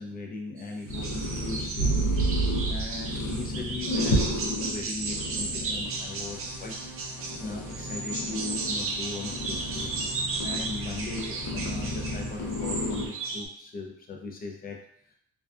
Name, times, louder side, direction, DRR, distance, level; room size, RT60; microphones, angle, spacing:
voice 1, 0.0-1.9 2.2-6.8 7.1-14.8 15.1-15.2, left 3 dB, 30° left, 1 dB, 0.5 m, -38 dB
sound 1, 0.6-0.7 0.9-13.5, right 3 dB, 45° right, 0.5 m, -35 dB
sound 2, 0.9-13.1, right 1 dB, 75° left, 0.7 m, -31 dB
sound 3, 5.8-13.4, right 1 dB, 10° right, 0.9 m, -45 dB
2.4 x 2.2 x 2.4 m, 0.65 s
cardioid pair, 90°, 30 cm